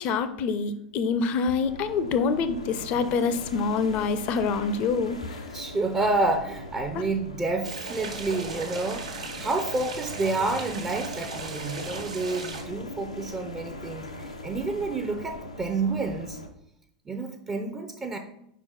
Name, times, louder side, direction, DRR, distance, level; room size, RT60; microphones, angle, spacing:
voice 1, 0.0-5.4 6.9-7.0, left 5 dB, 40° left, 11 dB, 0.6 m, -26 dB
sound 1, 1.6-16.5, left 1 dB, 85° left, 0.7 m, -40 dB
voice 2, 5.5-16.4 17.1-18.2, right 3 dB, 20° right, 5 dB, 0.7 m, -29 dB
sound 2, 7.6-12.6, right 3 dB, 75° right, 1.3 m, -37 dB
5.1 x 4.8 x 5.4 m, 0.76 s
figure-of-eight pair, 85°, 3 cm